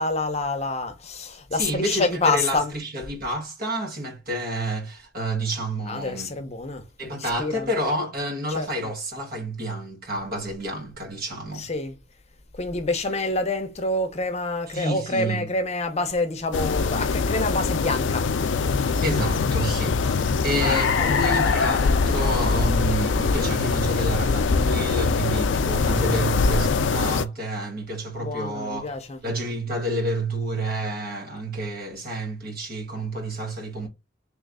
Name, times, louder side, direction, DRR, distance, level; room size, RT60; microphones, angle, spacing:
voice 1, 0.0-2.8 5.9-7.7 8.5-8.7 11.5-12.0 12.5-18.3 20.9-21.3 28.2-29.3, left 2 dB, 35° left, 0.7 m, -27 dB
voice 2, 1.5-6.3 7.0-11.7 14.7-15.5 19.0-28.9 29.2-33.9, right 1 dB, 55° right, 1.3 m, -29 dB
sound 1, 16.5-27.2, left 4 dB, 70° left, 0.4 m, -22 dB
3.2 x 3.1 x 3.7 m
head